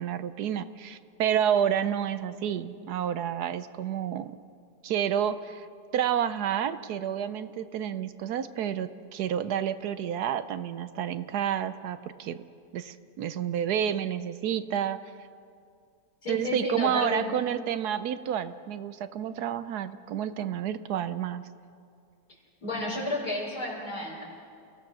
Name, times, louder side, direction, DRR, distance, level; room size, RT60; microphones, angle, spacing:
voice 1, 0.0-4.4 4.8-5.7 5.9-12.4 12.7-15.0 16.3-21.4, right 9 dB, 75° right, 13 dB, 1.2 m, -29 dB
voice 2, 16.2-17.3 22.6-24.2, left 2 dB, 70° left, -2 dB, 4.9 m, -31 dB
28.0 x 16.5 x 6.2 m, 2.4 s
omnidirectional pair, 1.8 m